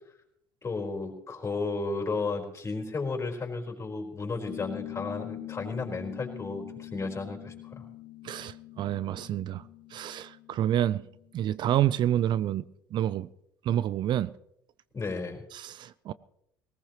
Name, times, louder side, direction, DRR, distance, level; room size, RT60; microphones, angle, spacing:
voice 1, 0.6-7.8 14.9-15.4, left 3 dB, 25° left, 4.2 m, -33 dB
sound 1, 4.5-11.4, left 15 dB, 50° left, 1.4 m, -43 dB
voice 2, 8.2-9.6 9.9-11.0 11.3-12.6 12.9-13.3 13.7-14.3 15.5-16.1, right 11 dB, 45° right, 0.5 m, -28 dB
19.0 x 18.5 x 3.0 m
hypercardioid pair, 65°, 10 cm